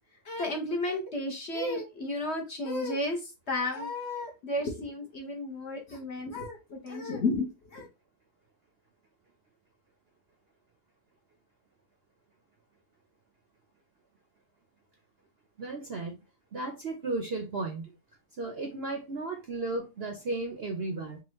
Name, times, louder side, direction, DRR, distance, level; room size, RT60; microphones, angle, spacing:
voice 1, 0.2-7.9, left 2 dB, 50° left, 0.9 m, -33 dB
voice 2, 15.6-16.2 16.5-17.9 18.4-21.2, right 2 dB, 50° right, 0.7 m, -34 dB
3.7 x 2.3 x 4.3 m
omnidirectional pair, 1.8 m